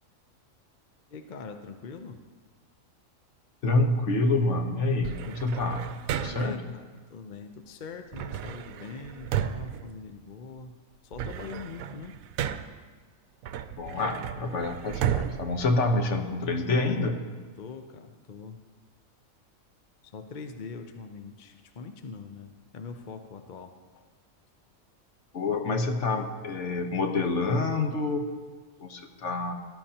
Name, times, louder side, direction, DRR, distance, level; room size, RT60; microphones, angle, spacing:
voice 1, 1.1-2.2 6.2-10.7 11.0-12.2 17.6-18.6 20.0-24.0, left 5 dB, 45° left, 6 dB, 0.7 m, -43 dB
voice 2, 3.6-5.9 6.2-6.6 13.8-17.2 25.3-28.3 28.8-29.5, left 2 dB, 60° left, 5 dB, 1.3 m, -27 dB
sound 1, 5.0-6.7 8.1-10.6 10.9-12.9 13.4-16.5, right 9 dB, 85° right, 1.0 m, -34 dB
19.0 x 12.5 x 2.9 m, 1.5 s
omnidirectional pair, 1.4 m